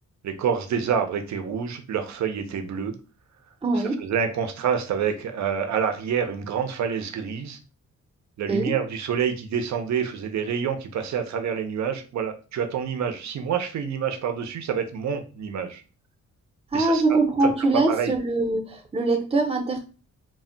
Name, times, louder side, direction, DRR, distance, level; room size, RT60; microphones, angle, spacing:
voice 1, 0.2-2.9 4.0-7.6 8.4-15.8 16.7-17.0 17.4-17.5 17.9-18.1, right 7 dB, 65° right, 7 dB, 0.5 m, -27 dB
voice 2, 3.6-4.0 8.5-8.7 16.7-19.8, right 2 dB, 20° right, 4 dB, 0.5 m, -23 dB
2.1 x 2.0 x 3.7 m, 0.35 s
wide cardioid pair, 130°, 30 cm